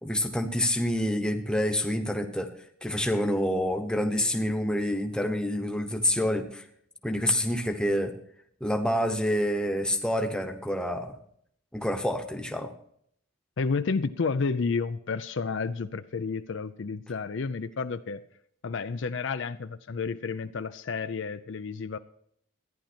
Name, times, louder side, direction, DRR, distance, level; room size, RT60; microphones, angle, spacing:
voice 1, 0.0-2.5 2.8-6.6 7.0-8.1 8.6-11.2 11.7-12.7, left 1 dB, 5° left, 5 dB, 1.0 m, -27 dB
voice 2, 13.6-18.2 18.6-22.0, left 4 dB, 60° left, 11 dB, 0.5 m, -31 dB
14.5 x 10.5 x 4.3 m, 0.66 s
head